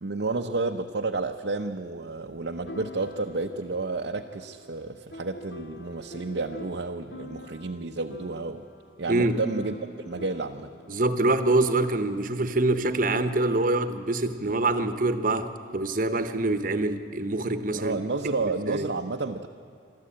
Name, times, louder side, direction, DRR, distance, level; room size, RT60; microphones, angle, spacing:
voice 1, 0.0-8.7 9.0-10.7 17.7-19.5, right 3 dB, 65° right, 3 dB, 0.7 m, -31 dB
sound 1, 2.7-13.9, left 1 dB, 60° left, 1.0 m, -46 dB
voice 2, 9.1-9.4 10.9-18.0 18.4-18.9, right 2 dB, 45° right, 10 dB, 1.0 m, -25 dB
24.5 x 13.0 x 8.6 m, 2.3 s
head